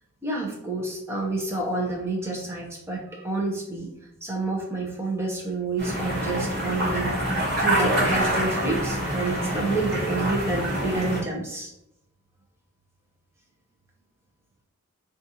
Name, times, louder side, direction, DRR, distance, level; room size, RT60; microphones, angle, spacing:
voice 1, 0.2-3.9 4.2-7.1 7.6-11.7, right 2 dB, 10° right, -2 dB, 0.6 m, -29 dB
sound 1, 5.8-11.2, right 1 dB, 45° right, 1.1 m, -26 dB
3.9 x 2.4 x 2.8 m, 0.83 s
head